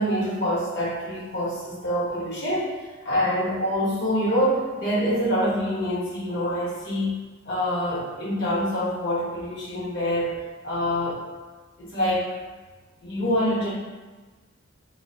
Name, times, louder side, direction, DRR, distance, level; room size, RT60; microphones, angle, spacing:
voice 1, 0.0-7.1 7.4-10.3 10.6-11.2 11.8-12.2 13.0-13.7, equal, 55° left, -7 dB, 1.0 m, -25 dB
3.5 x 2.5 x 2.7 m, 1.3 s
head